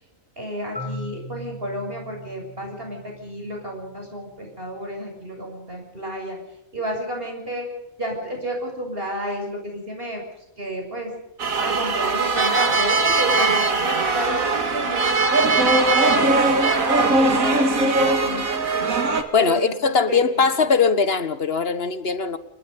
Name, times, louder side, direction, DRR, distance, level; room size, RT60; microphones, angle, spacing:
voice 1, 0.4-6.4 6.7-7.6 8.0-10.2 10.6-11.1 11.6-15.4 15.8-18.9 19.4-20.4, equal, 40° right, 1 dB, 7.1 m, -31 dB
Marimba xylophone, 0.7-4.6, equal, 5° left, 5.0 m, -39 dB
sound 1, 11.4-19.2, right 3 dB, 75° right, 2.5 m, -20 dB
voice 2, 19.3-22.4, left 5 dB, 45° left, 12 dB, 1.6 m, -20 dB
28.5 x 20.0 x 5.3 m, 0.85 s
omnidirectional pair, 1.4 m